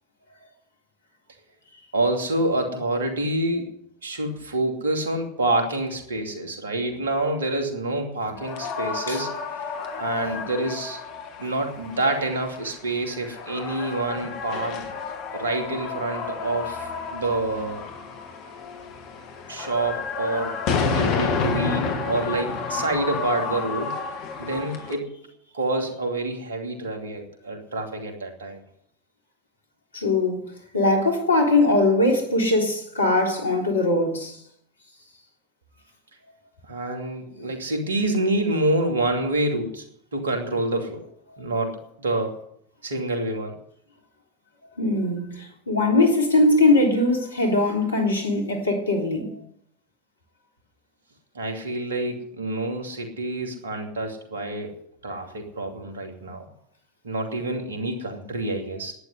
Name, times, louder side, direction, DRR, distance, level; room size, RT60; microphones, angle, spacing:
voice 1, 1.9-3.7 4.0-9.3 9.7-11.0 11.4-14.8 15.3-17.8 19.5-20.6 20.9-24.0 24.4-25.1 25.5-28.6 36.6-39.9 40.1-41.0 41.4-42.4 42.8-43.6 51.3-54.8 55.0-56.4 57.0-58.9, right 2 dB, 75° right, 2.7 m, -27 dB
sound 1, 8.3-24.9, left 5 dB, 50° left, 2.6 m, -30 dB
voice 2, 29.9-30.4 30.7-34.4 44.8-49.4, left 2 dB, 80° left, 3.4 m, -21 dB
11.5 x 9.8 x 9.7 m
figure-of-eight pair, 80°, 0 cm